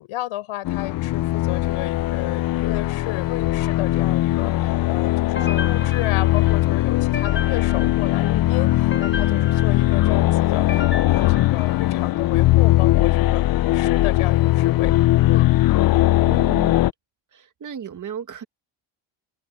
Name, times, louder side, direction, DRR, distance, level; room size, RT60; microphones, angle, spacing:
voice 1, 0.0-14.9 15.3-15.5, left 15 dB, 85° left, 6.8 m, -33 dB
sound 1, 0.6-16.9, left 16 dB, 45° left, 0.5 m, -19 dB
sound 2, 5.4-12.3, left 5 dB, 25° left, 3.9 m, -36 dB
voice 2, 16.2-16.8 17.3-18.4, right 8 dB, 35° right, 1.9 m, -35 dB
open air
cardioid pair, 135°, 49 cm